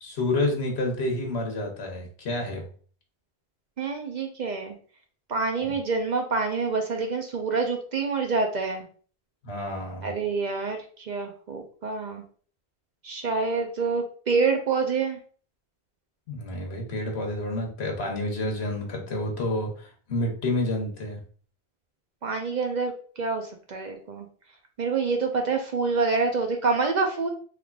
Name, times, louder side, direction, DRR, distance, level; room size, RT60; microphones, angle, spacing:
voice 1, 0.0-2.7 5.6-5.8 9.4-10.1 16.3-21.2, left 1 dB, 85° left, 2 dB, 1.2 m, -29 dB
voice 2, 3.8-4.7 5.3-8.8 10.0-10.8 11.1-12.2 13.0-15.2 22.2-24.3 24.8-27.3, right 4 dB, 55° right, 4 dB, 0.6 m, -27 dB
3.5 x 3.2 x 2.3 m, 0.43 s
omnidirectional pair, 1.1 m